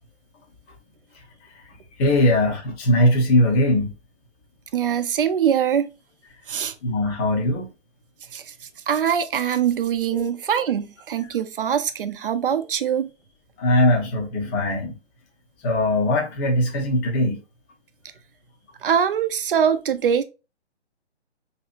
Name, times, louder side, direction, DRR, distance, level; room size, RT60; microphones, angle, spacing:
voice 1, 2.0-3.9 6.8-7.7 13.6-14.9 15.6-17.4, left 1 dB, 15° left, 0.6 m, -20 dB
voice 2, 4.7-5.9 6.5-6.7 8.3-8.5 8.9-13.1 18.8-20.2, right 8 dB, 50° right, 0.6 m, -23 dB
4.6 x 2.7 x 2.4 m
figure-of-eight pair, 135°, 35 cm